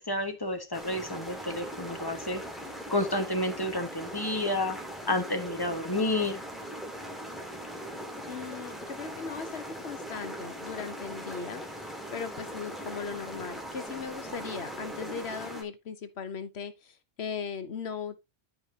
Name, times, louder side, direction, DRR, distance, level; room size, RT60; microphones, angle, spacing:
voice 1, 0.0-2.5 2.9-4.8 5.1-6.4, left 1 dB, 20° left, 1.3 m, -30 dB
sound 1, 0.7-15.6, equal, ahead, 1.8 m, -40 dB
voice 2, 8.3-18.2, left 6 dB, 70° left, 1.2 m, -38 dB
12.5 x 5.0 x 2.8 m
omnidirectional pair, 1.2 m